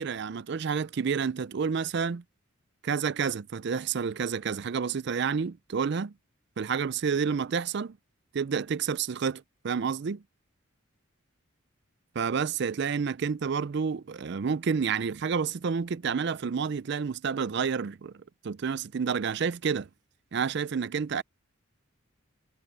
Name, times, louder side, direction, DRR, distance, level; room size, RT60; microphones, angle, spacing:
voice 1, 0.0-2.2 2.8-6.1 6.6-8.0 8.3-10.2 12.2-18.1 18.4-19.9 20.3-21.2, right 6 dB, 55° right, 0.4 m, -29 dB
head